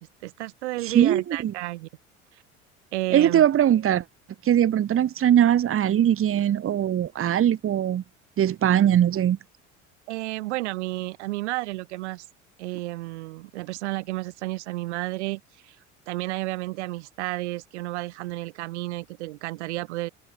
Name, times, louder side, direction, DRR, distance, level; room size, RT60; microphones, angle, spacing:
voice 1, 0.2-1.9 2.3-2.4 2.9-3.4 10.1-12.3 12.6-15.8 16.1-20.1, right 20 dB, 65° right, 2.3 m, -32 dB
voice 2, 0.9-1.5 3.1-4.0 4.4-8.0 8.4-9.4, right 10 dB, 35° right, 2.2 m, -21 dB
figure-of-eight pair, 65°, 37 cm